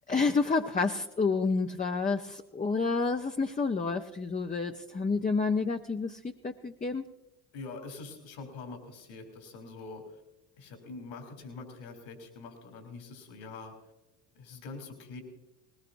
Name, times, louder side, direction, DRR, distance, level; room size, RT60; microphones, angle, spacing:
voice 1, 0.1-7.0, left 4 dB, 15° left, 4 dB, 0.7 m, -29 dB
voice 2, 7.5-10.2 10.6-13.7 14.3-15.2, left 3 dB, 65° left, 4 dB, 3.2 m, -44 dB
20.0 x 18.5 x 2.6 m, 0.95 s
hypercardioid pair, 60°, 50 cm